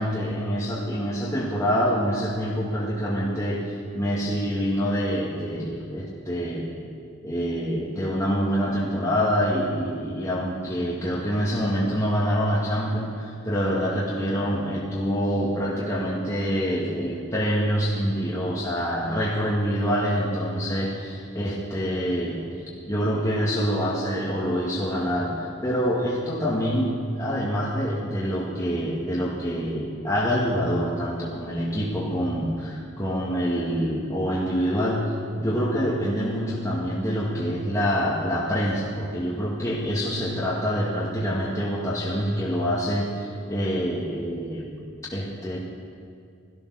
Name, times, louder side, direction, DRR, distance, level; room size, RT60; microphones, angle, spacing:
voice 1, 0.0-3.6 3.9-6.7 7.2-22.4 22.9-44.7 45.1-45.6, equal, 15° left, -7 dB, 2.0 m, -26 dB
17.0 x 13.5 x 6.4 m, 2.2 s
head